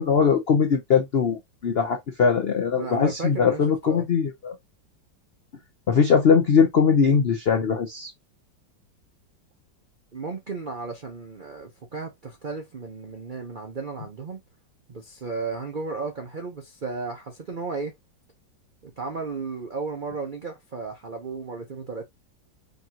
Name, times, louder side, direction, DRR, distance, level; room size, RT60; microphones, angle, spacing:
voice 1, 0.0-4.5 5.9-8.1, left 6 dB, 80° left, 0.5 m, -21 dB
voice 2, 2.7-4.1 10.1-14.4 14.9-17.9 18.8-22.0, right 4 dB, 65° right, 0.4 m, -34 dB
5.2 x 2.5 x 2.8 m
omnidirectional pair, 2.0 m